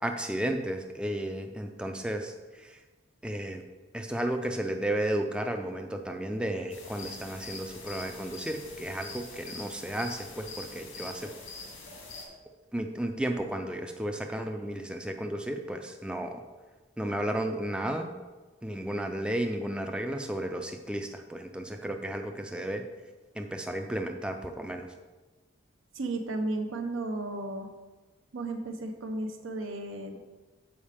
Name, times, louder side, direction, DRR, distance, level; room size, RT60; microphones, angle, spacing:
voice 1, 0.0-2.8 3.2-3.6 3.9-11.3 12.7-16.4 17.0-18.1 18.6-22.8 23.4-24.9, right 1 dB, 5° right, 4 dB, 0.3 m, -33 dB
sound 1, 6.7-12.2, left 3 dB, 90° left, 1.6 m, -44 dB
voice 2, 25.9-27.7 28.3-30.2, right 2 dB, 85° right, 5 dB, 0.8 m, -34 dB
7.1 x 4.7 x 4.9 m, 1.2 s
head